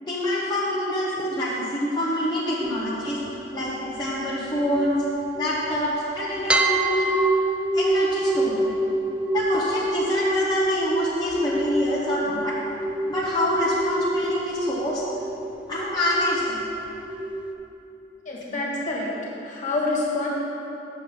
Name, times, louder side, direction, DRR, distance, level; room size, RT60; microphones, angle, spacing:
voice 1, 0.0-3.2 3.5-5.0 5.4-7.1 7.7-8.7 9.3-12.5 13.1-15.0 15.7-16.6, left 1 dB, 25° left, -8 dB, 0.9 m, -26 dB
sound 1, 2.6-6.0 6.5-17.5, right 1 dB, 5° right, 0.4 m, -27 dB
voice 2, 18.3-19.1 19.4-20.3, left 2 dB, 45° left, -5 dB, 1.7 m, -27 dB
7.7 x 7.0 x 4.8 m, 3.0 s
head